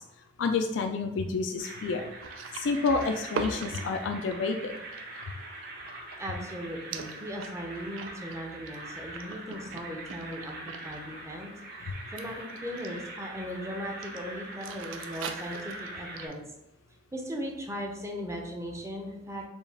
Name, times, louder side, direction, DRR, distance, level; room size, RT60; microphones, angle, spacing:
voice 1, 0.4-2.0 2.5-4.7, left 4 dB, 75° left, 5 dB, 0.3 m, -29 dB
sound 1, 1.6-16.3, right 2 dB, 50° right, 1.0 m, -43 dB
sound 2, 2.2-6.6 6.9-11.0 11.3-11.6 12.2-13.1 14.0-14.2 14.5-16.4, right 4 dB, 90° right, 0.4 m, -41 dB
voice 2, 6.2-11.5 11.8-16.4 17.1-19.4, equal, 15° right, 1 dB, 0.6 m, -38 dB
4.3 x 2.3 x 3.4 m, 0.84 s
head